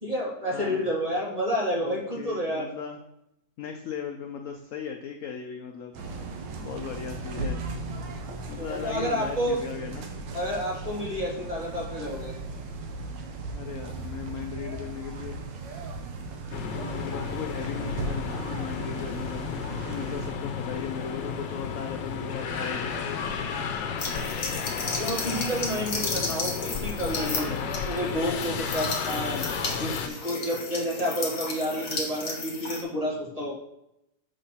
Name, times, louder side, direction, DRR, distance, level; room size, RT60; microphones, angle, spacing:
voice 1, 0.0-2.7 8.6-9.6 10.3-12.3 24.9-27.5 27.9-29.4 29.8-33.5, equal, 20° right, -4 dB, 1.7 m, -30 dB
voice 2, 0.5-0.9 1.8-3.0 3.6-5.9 6.6-7.6 8.5-10.1 13.5-15.4 16.5-23.1 27.2-27.7 29.3-29.6, left 7 dB, 65° left, 4 dB, 0.8 m, -37 dB
sound 1, 5.9-20.3, right 3 dB, 80° right, 1.6 m, -37 dB
sound 2, 16.5-30.1, left 6 dB, 90° left, 1.5 m, -33 dB
sound 3, 24.0-32.8, left 3 dB, 40° left, 1.1 m, -34 dB
6.6 x 3.8 x 5.6 m, 0.82 s
omnidirectional pair, 2.0 m